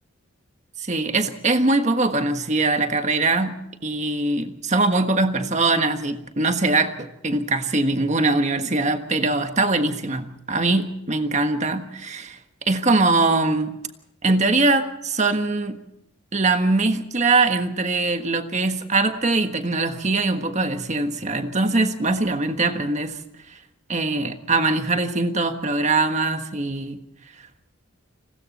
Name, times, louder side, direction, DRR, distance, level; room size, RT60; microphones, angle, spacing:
voice 1, 0.8-12.4 12.7-13.7 14.2-15.8 16.3-23.2 23.9-27.0, right 3 dB, 35° right, 7 dB, 1.5 m, -22 dB
30.0 x 20.0 x 4.2 m, 0.86 s
head